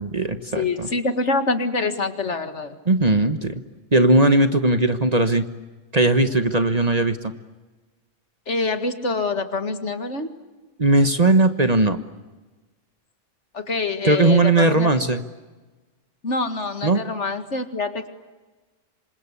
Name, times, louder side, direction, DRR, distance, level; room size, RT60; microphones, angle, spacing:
voice 1, 0.0-0.9 2.9-3.6 3.9-5.4 5.9-7.2 10.8-12.0 14.0-15.2 16.8-17.0, right 2 dB, 30° right, 9 dB, 1.3 m, -18 dB
voice 2, 0.6-2.7 8.5-10.3 13.5-15.2 16.2-18.1, left 3 dB, 65° left, 8 dB, 2.3 m, -25 dB
28.0 x 25.5 x 8.3 m, 1.2 s
omnidirectional pair, 1.3 m